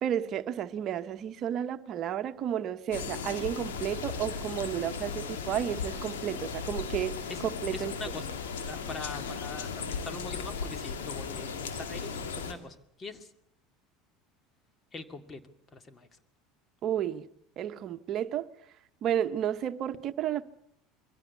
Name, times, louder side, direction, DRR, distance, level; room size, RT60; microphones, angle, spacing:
voice 1, 0.0-7.1 7.6-7.9 16.8-17.3 17.6-18.5 19.0-20.4, right 10 dB, 50° right, 1.0 m, -32 dB
sound 1, 2.9-12.5, left 5 dB, 80° left, 2.4 m, -36 dB
voice 2, 7.7-8.3 8.6-13.3 14.9-15.4 15.7-16.1, left 3 dB, 30° left, 2.2 m, -42 dB
23.0 x 17.0 x 8.3 m
hypercardioid pair, 80°, 0 cm